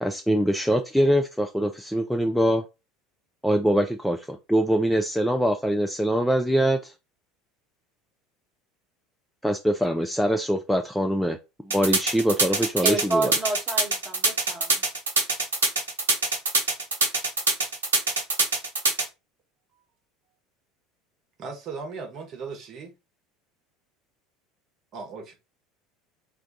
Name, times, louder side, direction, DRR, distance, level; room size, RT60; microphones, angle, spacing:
voice 1, 0.0-2.6 3.4-6.9 9.4-11.4 11.6-13.3, equal, ahead, 0.4 m, -23 dB
sound 1, 11.7-19.0, right 3 dB, 75° right, 0.6 m, -23 dB
voice 2, 12.8-14.8, right 3 dB, 25° right, 1.2 m, -29 dB
voice 3, 21.4-22.9 24.9-25.4, right 4 dB, 45° right, 0.9 m, -37 dB
2.5 x 2.3 x 3.8 m
figure-of-eight pair, 70°, 0 cm